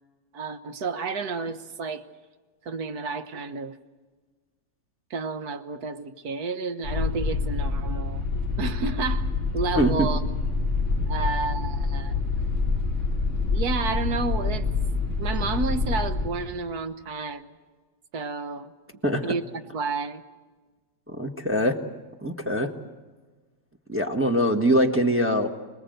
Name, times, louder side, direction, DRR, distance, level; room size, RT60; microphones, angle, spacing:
voice 1, 0.3-2.0 2.6-3.8 5.1-8.3 8.6-9.3 9.5-10.2 11.1-12.2 13.5-14.7 15.2-17.6 18.1-18.7 19.2-19.4 19.7-20.2, right 4 dB, 70° right, 1.7 m, -30 dB
sound 1, 6.8-16.3, left 4 dB, 45° right, 4.5 m, -26 dB
voice 2, 9.8-10.1 11.0-11.1 19.0-19.3 21.1-21.8 22.2-22.7 23.9-25.5, equal, 10° right, 1.3 m, -23 dB
26.0 x 20.0 x 8.0 m
omnidirectional pair, 1.7 m